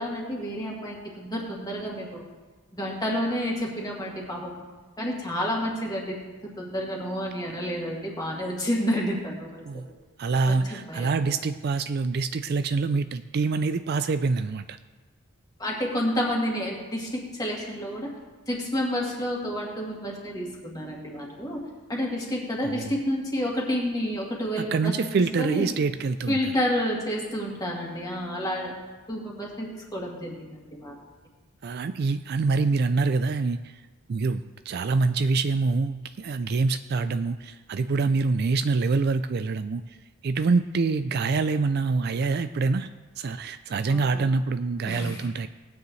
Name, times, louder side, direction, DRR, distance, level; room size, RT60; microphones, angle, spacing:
voice 1, 0.0-2.2 2.7-4.6 5.0-6.2 6.6-9.6 10.5-11.1 15.6-18.1 18.5-21.6 21.9-24.9 25.4-25.7 26.3-28.7 29.1-31.0 43.9-44.2 44.9-45.2, equal, 15° left, -3 dB, 2.2 m, -30 dB
voice 2, 10.2-14.8 22.6-23.0 24.6-26.5 31.6-33.8 34.1-40.0 40.2-42.9 43.2-45.5, right 4 dB, 45° right, 11 dB, 0.3 m, -25 dB
18.5 x 9.2 x 3.2 m, 1.3 s
head